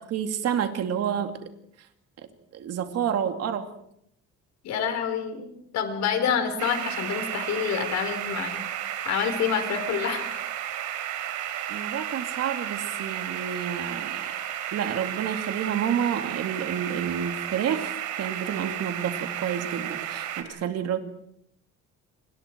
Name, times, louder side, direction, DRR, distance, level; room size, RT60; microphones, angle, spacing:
voice 1, 0.1-1.5 2.5-3.7 11.7-14.3 14.7-21.0, right 8 dB, 55° right, 7 dB, 2.8 m, -29 dB
voice 2, 4.6-8.6 9.0-10.4, left 7 dB, 65° left, 7 dB, 4.5 m, -27 dB
sound 1, 6.6-20.4, right 10 dB, 80° right, 3.6 m, -33 dB
29.5 x 26.0 x 4.7 m, 0.74 s
cardioid pair, 135°, 29 cm